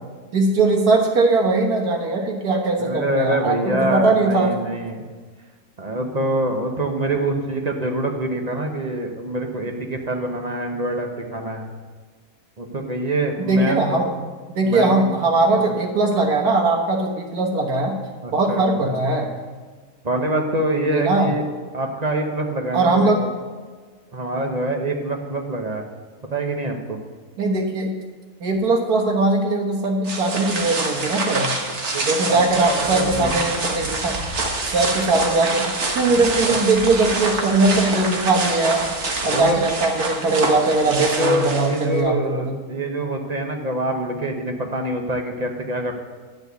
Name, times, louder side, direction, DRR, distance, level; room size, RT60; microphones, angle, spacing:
voice 1, 0.3-4.5 13.5-14.1 14.6-17.9 18.3-19.3 20.9-21.4 22.7-23.3 27.4-27.9 28.4-31.5 32.1-34.1 34.7-38.9 39.2-42.6, right 2 dB, 85° right, 1 dB, 1.9 m, -20 dB
voice 2, 2.8-5.0 5.8-11.7 12.6-14.0 14.6-15.1 15.6-15.7 18.2-18.6 20.0-21.4 21.7-23.3 24.1-25.8 26.3-27.0 31.9-33.4 36.0-36.1 36.5-36.6 39.3-39.6 40.9-45.9, right 1 dB, 30° right, 3 dB, 0.9 m, -25 dB
sound 1, 30.0-42.0, right 2 dB, 50° right, 1.5 m, -26 dB
11.0 x 4.5 x 8.1 m, 1.5 s
omnidirectional pair, 1.6 m